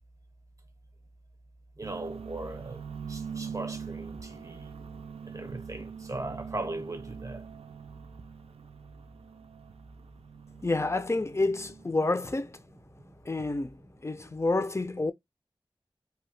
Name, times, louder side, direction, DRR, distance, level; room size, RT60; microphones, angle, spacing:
voice 1, 1.8-2.8 3.1-4.7 5.2-7.5 12.9-13.2 14.1-14.4, right 2 dB, 30° right, 0.7 m, -39 dB
sound 1, 1.8-12.0, right 6 dB, 90° right, 0.4 m, -43 dB
voice 2, 10.6-12.6 13.2-15.1, left 2 dB, 30° left, 0.4 m, -29 dB
2.8 x 2.2 x 3.2 m
wide cardioid pair, 50°, 10 cm